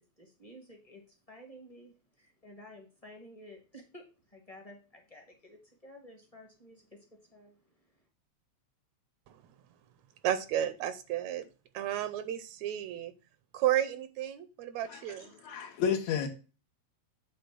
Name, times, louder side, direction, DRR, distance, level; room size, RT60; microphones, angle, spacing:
voice 1, 0.0-6.8 7.1-7.6, equal, 20° left, 2 dB, 0.9 m, -53 dB
voice 2, 10.2-11.5 11.7-13.1 13.5-15.3, right 11 dB, 80° right, 12 dB, 1.9 m, -32 dB
voice 3, 15.4-16.3, left 7 dB, 70° left, 4 dB, 2.4 m, -31 dB
8.6 x 3.4 x 6.0 m, 0.33 s
omnidirectional pair, 3.3 m